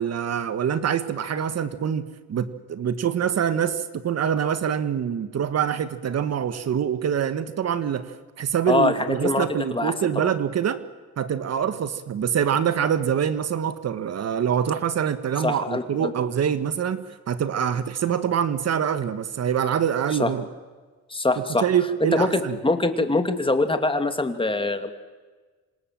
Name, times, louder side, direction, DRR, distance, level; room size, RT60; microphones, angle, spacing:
voice 1, 0.0-10.8 11.2-20.4 21.6-22.6, right 8 dB, 55° right, 12 dB, 1.6 m, -25 dB
voice 2, 8.7-10.3 15.4-16.1 20.2-20.3 21.1-21.6 22.1-24.9, left 2 dB, 15° left, 8 dB, 2.6 m, -24 dB
27.0 x 26.5 x 7.7 m, 1.4 s
cardioid pair, 90°, 30 cm